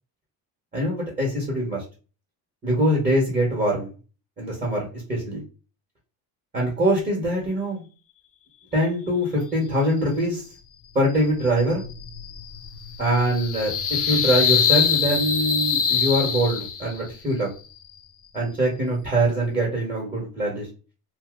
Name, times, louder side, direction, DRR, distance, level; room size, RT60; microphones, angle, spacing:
voice 1, 0.7-1.8 2.6-3.9 4.4-5.4 6.5-7.8 8.7-10.4 10.9-11.8 13.0-17.5 18.3-20.7, right 1 dB, 20° right, -4 dB, 1.3 m, -23 dB
sound 1, 11.1-17.1, left 7 dB, 40° left, 0.5 m, -24 dB
2.7 x 2.3 x 3.7 m, 0.33 s
cardioid pair, 150°, 38 cm